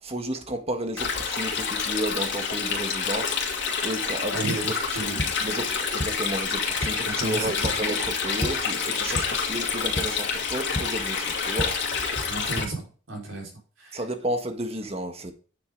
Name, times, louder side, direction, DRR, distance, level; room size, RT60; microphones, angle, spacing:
voice 1, 0.0-11.8 13.9-15.3, right 1 dB, 30° right, 1.5 m, -32 dB
Stream, 1.0-12.6, left 5 dB, 60° left, 2.6 m, -28 dB
voice 2, 4.3-5.3 7.0-7.5 12.2-13.5 13.8-14.0, right 3 dB, 80° right, 4.7 m, -33 dB
sound 1, 4.9-12.6, left 1 dB, 25° left, 1.1 m, -36 dB
sound 2, 6.1-11.8, left 5 dB, 80° left, 2.6 m, -41 dB
9.4 x 7.8 x 3.8 m
head